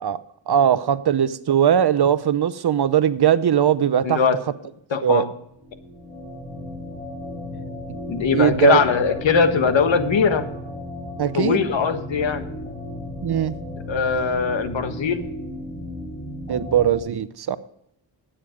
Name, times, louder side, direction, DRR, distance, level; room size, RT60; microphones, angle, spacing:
voice 1, 0.5-4.2 5.0-5.3 7.9-8.0 8.3-8.8 11.2-11.6 13.2-13.5 16.5-17.6, right 9 dB, 55° right, 14 dB, 0.8 m, -19 dB
voice 2, 4.0-4.4 4.9-5.3 8.1-10.4 11.3-12.4 13.9-15.2, left 5 dB, 75° left, 9 dB, 1.4 m, -21 dB
sound 1, 5.4-17.0, left 1 dB, 15° left, 5.4 m, -34 dB
12.5 x 9.0 x 5.1 m, 0.76 s
cardioid pair, 75°, 46 cm